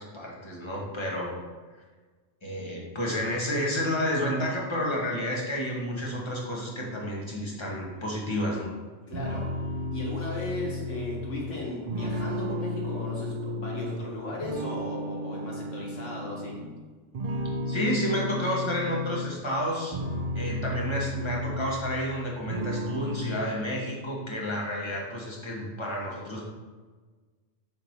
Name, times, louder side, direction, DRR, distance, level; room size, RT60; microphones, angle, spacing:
voice 1, 0.0-1.4 2.4-8.7 17.7-19.9 20.3-26.4, equal, 25° left, -3 dB, 1.3 m, -30 dB
voice 2, 9.1-9.5 9.9-16.6, left 2 dB, 80° left, -3 dB, 1.8 m, -36 dB
sound 1, 9.1-14.0 14.4-16.7 17.1-19.3 19.7-22.2 22.5-23.4, left 1 dB, 40° right, 0.6 m, -33 dB
6.9 x 3.7 x 4.6 m, 1.4 s
omnidirectional pair, 1.3 m